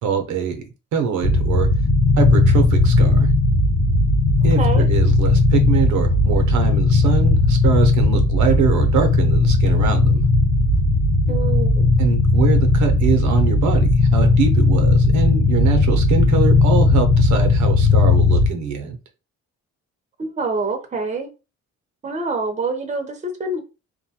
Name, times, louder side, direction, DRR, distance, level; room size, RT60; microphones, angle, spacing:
voice 1, 0.0-1.7 2.2-3.3 4.4-10.2 12.0-19.0, right 6 dB, 75° right, 0.7 m, -23 dB
sound 1, 1.2-18.5, left 3 dB, 75° left, 1.0 m, -16 dB
voice 2, 11.3-11.9 20.2-21.3 22.0-23.6, right 3 dB, 25° right, 0.6 m, -26 dB
2.5 x 2.2 x 2.7 m
cardioid pair, 90°, 30 cm